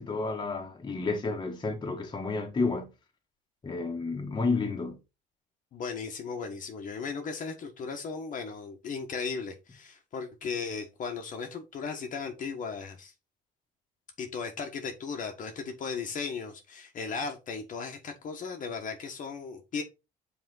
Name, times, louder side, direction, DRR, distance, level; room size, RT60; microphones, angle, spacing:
voice 1, 0.0-2.9 3.6-5.0, left 3 dB, 25° left, 1.5 m, -31 dB
voice 2, 5.7-13.1 14.2-19.8, left 5 dB, 50° left, 1.3 m, -36 dB
5.9 x 4.2 x 4.0 m
cardioid pair, 110°, 17 cm